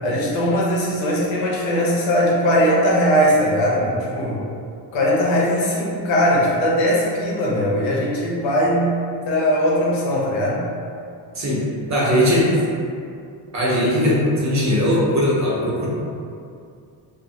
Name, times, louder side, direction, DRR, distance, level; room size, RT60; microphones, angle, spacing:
voice 1, 0.0-4.4 4.9-9.0 9.3-10.7, equal, 80° left, -4 dB, 0.8 m, -19 dB
voice 2, 11.9-12.5 13.5-15.9, equal, 40° right, -6 dB, 0.9 m, -19 dB
2.6 x 2.5 x 2.6 m, 2.4 s
cardioid pair, 100°, 45 cm